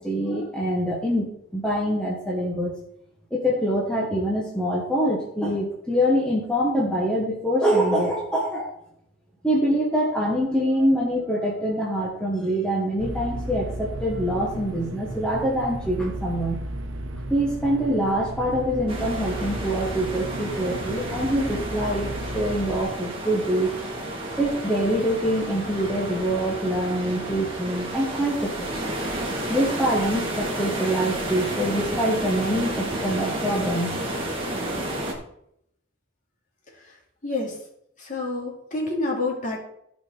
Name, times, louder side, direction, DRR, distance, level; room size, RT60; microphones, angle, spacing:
voice 1, 0.0-2.7 3.3-8.7 9.4-16.6 17.3-23.7 24.4-29.0 29.5-34.0, equal, 5° left, -4 dB, 1.4 m, -25 dB
sound 1, 13.0-22.8, right 1 dB, 75° right, 1.0 m, -34 dB
sound 2, 18.9-35.1, right 1 dB, 25° right, 2.1 m, -31 dB
voice 2, 37.2-37.6 38.0-39.6, left 2 dB, 40° left, -2 dB, 2.7 m, -28 dB
15.0 x 5.3 x 3.9 m, 0.73 s
head